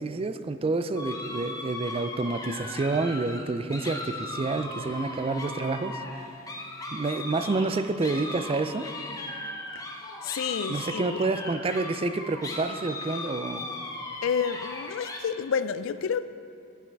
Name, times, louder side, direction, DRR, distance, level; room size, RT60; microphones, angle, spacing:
voice 1, 0.0-6.0 6.9-8.9 10.7-13.7, right 3 dB, 30° right, 10 dB, 0.4 m, -28 dB
sound 1, 1.0-15.2, left 2 dB, 20° left, 0.9 m, -37 dB
voice 2, 10.2-11.2 14.2-16.3, left 7 dB, 75° left, 14 dB, 0.4 m, -30 dB
10.0 x 9.3 x 4.6 m, 2.4 s
head